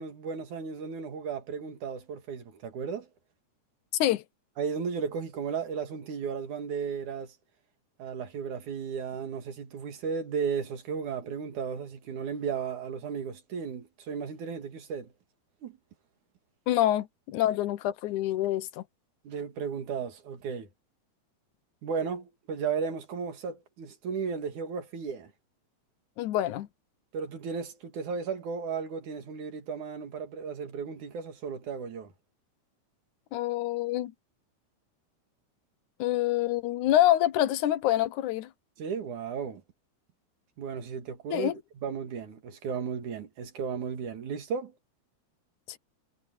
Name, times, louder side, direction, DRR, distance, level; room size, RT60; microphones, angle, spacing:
voice 1, 0.0-3.1 4.6-7.3 8.0-15.1 15.6-15.8 19.3-20.7 21.8-25.3 27.1-32.1 38.8-39.6 40.6-44.8, right 6 dB, 75° right, 3.7 m, -35 dB
voice 2, 16.7-18.8 26.2-26.7 33.3-34.1 36.0-38.5 41.3-41.5 45.7-45.8, left 13 dB, 80° left, 2.4 m, -26 dB
omnidirectional pair, 3.5 m